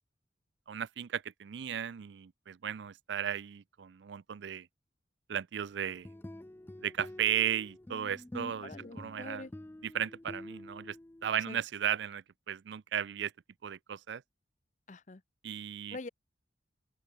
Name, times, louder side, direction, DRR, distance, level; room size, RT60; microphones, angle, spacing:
voice 1, 0.7-4.7 5.3-6.1 6.8-8.7 9.0-9.5 9.8-11.0 11.2-13.3 13.6-14.2 15.4-16.0, right 9 dB, 70° right, 0.4 m, -35 dB
sound 1, 5.8-11.4, left 1 dB, 10° left, 0.4 m, -47 dB
voice 2, 8.6-9.5 11.5-11.6 14.9-15.2 15.9-16.1, left 3 dB, 40° left, 0.7 m, -44 dB
open air
head